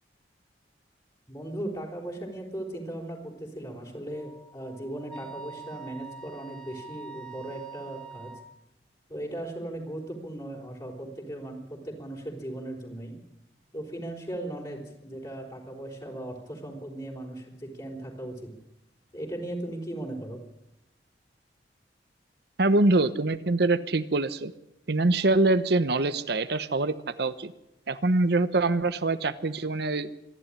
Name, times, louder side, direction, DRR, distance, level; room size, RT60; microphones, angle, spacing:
voice 1, 1.3-8.3 9.1-13.2 13.7-18.5 19.1-20.4, right 1 dB, 25° left, -2 dB, 4.1 m, -37 dB
Wind instrument woodwind instrument, 4.1-8.5, right 5 dB, 5° left, 1.6 m, -45 dB
voice 2, 22.6-24.5 24.9-27.5 27.9-30.1, right 2 dB, 65° right, 12 dB, 1.0 m, -24 dB
26.5 x 11.5 x 10.0 m, 0.87 s
head